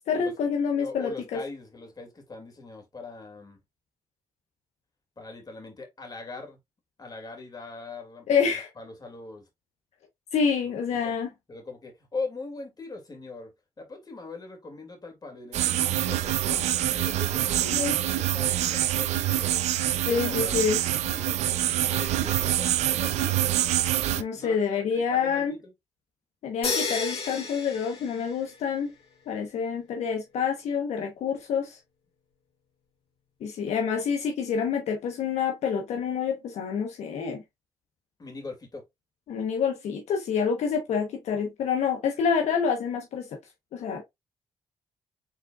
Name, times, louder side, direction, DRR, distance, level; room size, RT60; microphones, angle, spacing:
voice 1, 0.1-1.4 8.3-8.7 10.3-11.3 17.7-18.0 20.0-20.8 24.2-25.5 26.4-28.9 29.3-31.8 33.4-37.4 39.3-43.3 43.7-44.0, left 6 dB, 75° left, 1.0 m, -27 dB
voice 2, 0.8-3.6 5.2-6.6 7.0-9.4 10.6-11.2 11.5-19.7 20.0-23.4 24.3-24.6 25.1-25.7 38.2-38.8, left 3 dB, 35° left, 2.3 m, -41 dB
sound 1, 15.5-24.2, right 12 dB, 80° right, 0.4 m, -25 dB
sound 2, 26.6-28.8, left 4 dB, 55° left, 2.1 m, -32 dB
5.1 x 3.7 x 2.3 m
supercardioid pair, 65°, 11 cm